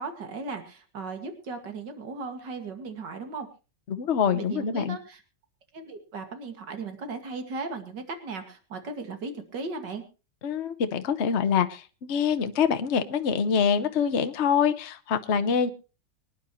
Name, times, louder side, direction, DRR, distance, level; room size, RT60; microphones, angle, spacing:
voice 1, 0.0-3.5 4.3-5.2 5.7-10.0, right 3 dB, 75° right, 6 dB, 2.8 m, -36 dB
voice 2, 3.9-5.0 10.4-15.7, left 7 dB, 45° left, 9 dB, 1.1 m, -25 dB
25.0 x 10.0 x 3.1 m, 0.33 s
omnidirectional pair, 1.9 m